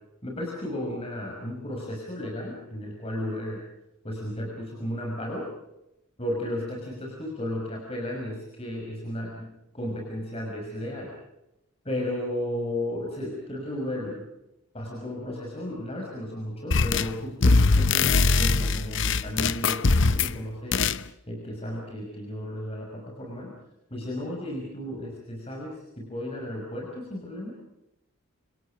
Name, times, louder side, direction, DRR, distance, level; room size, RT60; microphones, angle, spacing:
voice 1, 0.2-3.6 4.0-5.5 6.2-11.2 11.8-14.3 14.7-20.9 21.3-23.5 23.9-27.5, left 1 dB, 25° left, -1 dB, 5.9 m, -34 dB
sound 1, 16.7-17.2 17.4-20.4 20.7-21.0, left 4 dB, 55° left, 0.8 m, -22 dB
28.0 x 26.5 x 5.0 m, 0.89 s
head